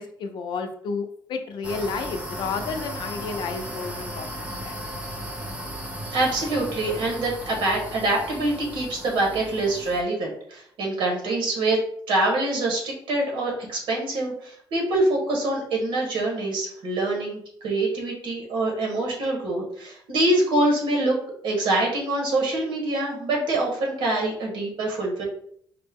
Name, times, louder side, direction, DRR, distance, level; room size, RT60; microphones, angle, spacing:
voice 1, 0.0-4.3 4.6-4.8, left 4 dB, 70° left, 6 dB, 0.5 m, -31 dB
sound 1, 1.6-10.0, equal, 15° right, 0.6 m, -36 dB
voice 2, 6.1-11.8 12.1-21.2 21.4-25.2, right 2 dB, 80° right, -1 dB, 1.3 m, -25 dB
4.4 x 2.0 x 3.5 m, 0.64 s
cardioid pair, 135°, 8 cm